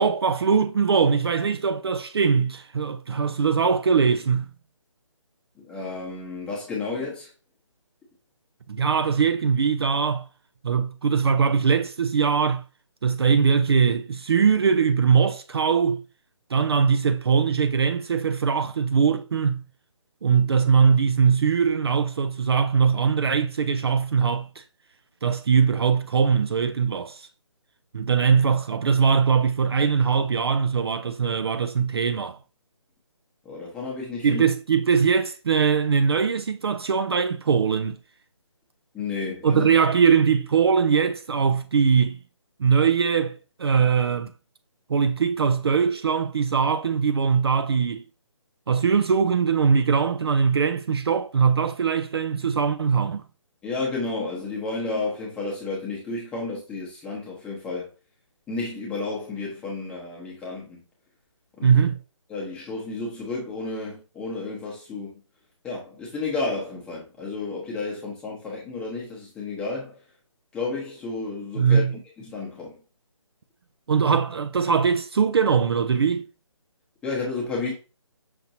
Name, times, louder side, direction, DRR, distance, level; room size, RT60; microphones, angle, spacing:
voice 1, 0.0-4.5 8.7-10.3 10.6-12.6 13.0-16.0 16.5-19.7 20.2-24.6 25.2-27.3 27.9-32.4 34.2-38.0 39.4-42.2 42.6-44.3 44.9-48.0 48.7-53.2 61.6-62.0 71.6-72.0 73.9-76.3, right 6 dB, 50° right, 0.4 m, -21 dB
voice 2, 5.6-7.3 33.4-34.5 38.9-39.7 53.6-57.9 58.5-60.8 61.6-61.7 62.3-65.2 65.6-70.0 70.5-72.8 77.0-77.7, left 3 dB, 5° left, 0.9 m, -32 dB
5.9 x 2.9 x 2.7 m
figure-of-eight pair, 160°, 17 cm